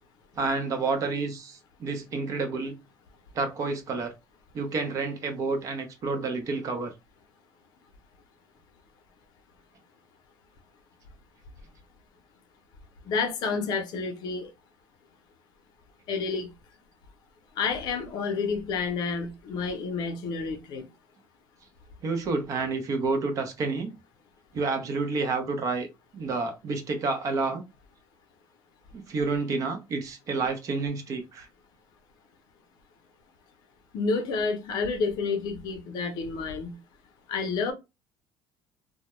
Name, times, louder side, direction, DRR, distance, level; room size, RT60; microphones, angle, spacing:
voice 1, 0.4-2.8 3.3-4.1 4.5-6.9 22.0-23.9 24.5-25.9 26.1-27.6 28.9-31.5, right 3 dB, 45° right, 0.6 m, -29 dB
voice 2, 13.0-14.5 16.1-16.5 17.6-20.9 33.9-36.7 37.3-37.7, left 4 dB, 60° left, 0.6 m, -29 dB
2.2 x 2.0 x 2.9 m
cardioid pair, 135°, 8 cm